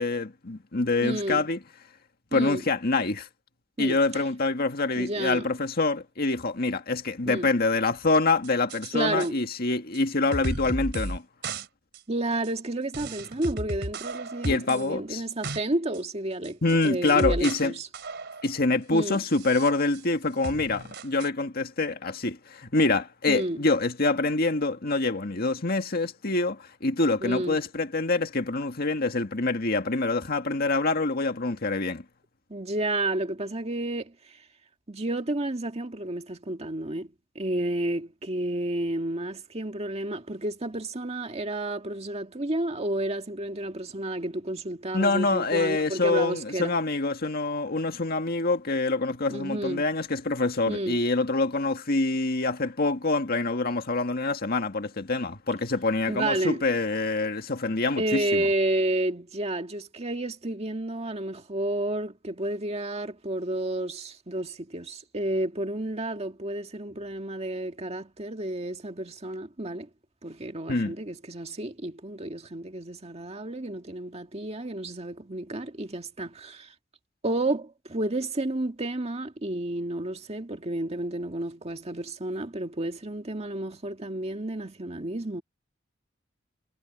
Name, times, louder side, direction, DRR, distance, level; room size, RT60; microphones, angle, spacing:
voice 1, 0.0-1.6 2.3-3.3 3.8-11.2 14.4-15.2 16.6-17.7 18.4-32.0 44.9-58.5 70.7-71.0, left 3 dB, 50° left, 1.8 m, -26 dB
voice 2, 1.0-1.5 2.3-2.6 3.8-4.2 5.0-5.5 7.3-7.5 8.9-9.4 12.1-16.6 16.8-17.9 18.9-19.2 23.3-23.6 27.2-27.6 32.5-34.4 34.9-37.1 37.4-46.8 49.3-49.9 50.7-51.0 56.1-56.6 58.0-69.9 70.2-76.7 77.2-85.4, right 1 dB, 35° right, 1.8 m, -31 dB
sound 1, 8.4-8.9 9.2-9.3 9.9-10.0 10.3-11.2 11.4-11.7 11.9-12.0 12.4-12.5 12.9-14.9 15.2-15.6 15.9-16.0 16.4-17.7 17.9-18.6 19.2-20.1 20.4-21.3, right 2 dB, 60° right, 4.0 m, -34 dB
head